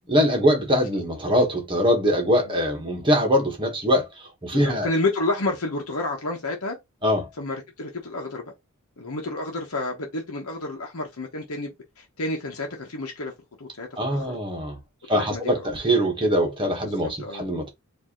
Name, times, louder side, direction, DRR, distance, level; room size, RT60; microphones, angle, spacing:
voice 1, 0.1-4.1 4.4-4.9 7.0-7.3 14.0-14.8 15.1-17.7, equal, 25° right, 1.4 m, -22 dB
voice 2, 4.5-6.8 7.4-8.4 9.0-13.3 13.6-14.4 15.1-15.7 16.8-16.9 17.2-17.4, left 2 dB, 75° left, 1.0 m, -30 dB
4.5 x 2.7 x 3.0 m
head